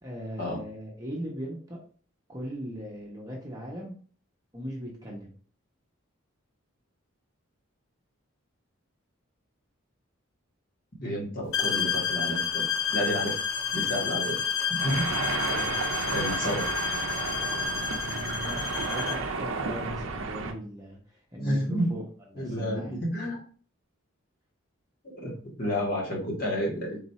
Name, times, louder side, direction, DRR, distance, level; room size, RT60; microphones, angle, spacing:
voice 1, 0.0-1.8 2.3-4.0 4.5-5.3 15.5-15.8 17.9-22.0 22.3-23.0, equal, 15° right, -1 dB, 0.8 m, -39 dB
voice 2, 11.0-12.7 12.9-13.4 13.7-14.4 14.7-15.3 16.1-16.7 21.4-22.0 22.4-23.4 25.0-27.0, equal, 45° left, -3 dB, 1.3 m, -30 dB
sound 1, 11.5-19.3, left 6 dB, 70° left, 0.7 m, -30 dB
sound 2, 14.8-20.5, right 4 dB, 70° right, 0.5 m, -32 dB
4.0 x 2.5 x 4.2 m, 0.42 s
head